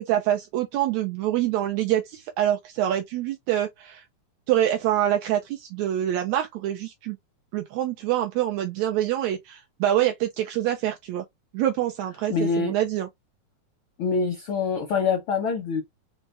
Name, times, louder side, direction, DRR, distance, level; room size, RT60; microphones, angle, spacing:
voice 1, 0.0-4.0 4.5-7.2 7.5-11.3 11.5-13.1, right 12 dB, 80° right, 1.8 m, -25 dB
voice 2, 12.3-12.7 14.0-15.8, left 5 dB, 70° left, 1.2 m, -25 dB
5.3 x 2.0 x 3.3 m
omnidirectional pair, 3.4 m